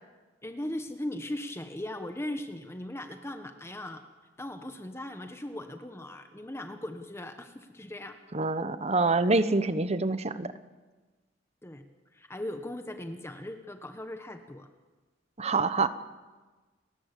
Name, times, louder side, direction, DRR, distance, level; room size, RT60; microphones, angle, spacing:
voice 1, 0.4-4.0 4.4-8.2 11.6-11.8 12.1-14.7, left 1 dB, 15° left, 7 dB, 1.2 m, -38 dB
voice 2, 8.3-10.5 15.4-15.9, right 3 dB, 35° right, 12 dB, 1.1 m, -26 dB
30.0 x 14.0 x 8.4 m, 1.3 s
head